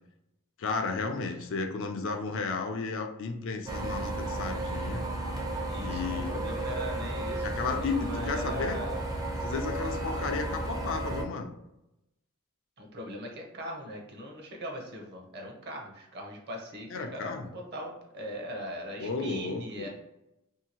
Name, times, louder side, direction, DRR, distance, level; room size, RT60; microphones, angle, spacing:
voice 1, 0.6-5.0 5.8-6.4 7.4-8.8 9.4-11.5 16.9-17.5 19.0-19.9, left 4 dB, 60° left, 5 dB, 0.4 m, -33 dB
sound 1, 3.7-11.2, right 1 dB, 15° right, 0.4 m, -33 dB
voice 2, 5.7-9.0 12.8-19.9, equal, 50° right, 1 dB, 0.7 m, -40 dB
2.7 x 2.7 x 2.8 m, 0.90 s
head